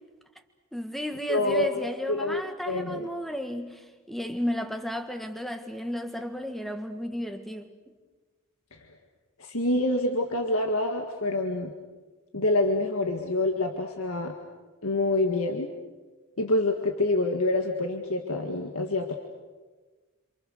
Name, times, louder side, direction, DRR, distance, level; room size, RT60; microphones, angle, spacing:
voice 1, 0.7-7.7, equal, ahead, 1.7 m, -33 dB
voice 2, 1.3-1.8 2.1-3.1 8.7-8.8 9.4-11.7 12.3-14.3 14.8-15.7 16.4-19.1, left 2 dB, 75° left, 2.0 m, -26 dB
28.0 x 27.5 x 6.7 m
head